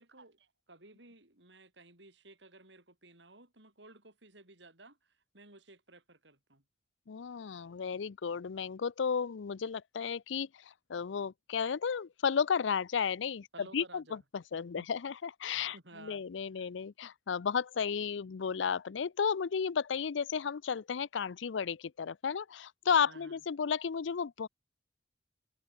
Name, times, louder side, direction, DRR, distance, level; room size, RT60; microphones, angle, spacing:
voice 1, 0.0-6.6 13.5-14.2 14.8-14.9 15.5-16.2 16.6-16.7 23.1-23.4, right 2 dB, 75° right, 7.2 m, -56 dB
voice 2, 7.1-10.5 10.9-13.5 13.7-14.2 14.5-24.5, left 6 dB, 85° left, 0.5 m, -33 dB
head